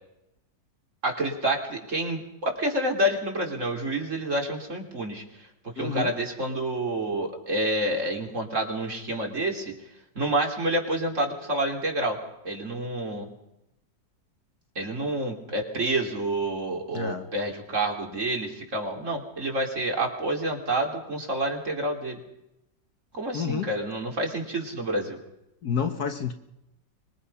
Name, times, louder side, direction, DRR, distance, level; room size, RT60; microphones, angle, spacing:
voice 1, 1.0-5.5 5.8-9.7 10.2-12.2 12.4-13.3 14.8-22.2 23.1-25.2, right 1 dB, 40° right, 2 dB, 3.8 m, -28 dB
voice 2, 5.8-6.1 16.9-17.3 23.3-23.7 25.6-26.3, left 6 dB, 55° left, 7 dB, 1.6 m, -29 dB
24.5 x 22.5 x 5.7 m, 0.86 s
omnidirectional pair, 2.1 m